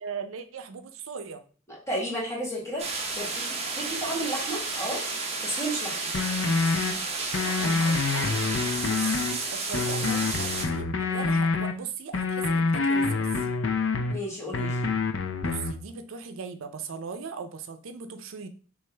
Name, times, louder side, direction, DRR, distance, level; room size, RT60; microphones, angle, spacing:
voice 1, 0.0-1.4 7.4-8.4 8.8-9.2 9.5-13.5 15.4-18.5, right 5 dB, 90° right, 9 dB, 0.5 m, -38 dB
voice 2, 1.9-2.8 3.2-5.0 5.4-6.0 14.1-14.8, right 1 dB, 15° left, -4 dB, 1.8 m, -32 dB
sound 1, 2.8-10.7, right 3 dB, 30° right, 0.7 m, -32 dB
sound 2, 6.1-6.9 7.3-9.3 9.7-11.7 12.1-14.1 14.5-15.7, left 4 dB, 75° left, 0.5 m, -26 dB
6.1 x 2.5 x 3.3 m, 0.40 s
head